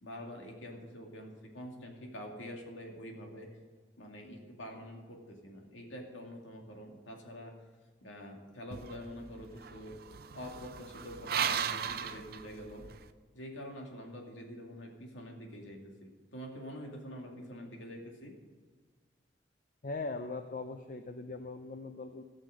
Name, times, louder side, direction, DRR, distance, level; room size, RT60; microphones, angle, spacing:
voice 1, 0.0-3.5 4.0-7.5 8.0-10.0 10.3-12.8 13.3-18.3, equal, 85° left, 1 dB, 2.4 m, -46 dB
sound 1, 8.7-13.1, right 8 dB, 55° right, 0.5 m, -37 dB
voice 2, 19.8-22.2, left 3 dB, 45° left, 7 dB, 0.5 m, -40 dB
16.0 x 6.5 x 6.4 m, 1.5 s
head